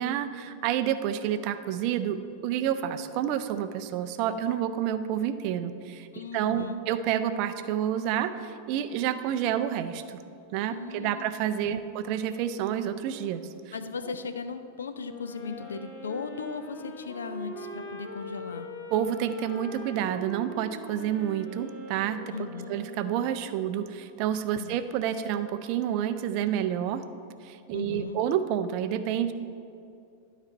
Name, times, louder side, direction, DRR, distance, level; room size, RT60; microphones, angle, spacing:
voice 1, 0.0-6.1 6.3-10.2 10.5-13.7 18.9-22.3 22.7-27.0 27.4-29.3, right 10 dB, 45° right, 11 dB, 0.4 m, -29 dB
voice 2, 6.1-6.8 10.7-11.9 13.7-18.7 22.3-22.7 24.5-24.8 27.7-28.2, left 4 dB, 70° left, 10 dB, 0.4 m, -37 dB
Wind instrument woodwind instrument, 15.0-23.4, left 1 dB, 40° left, 1.1 m, -42 dB
12.0 x 4.2 x 4.4 m, 2.5 s
figure-of-eight pair, 90°, 0 cm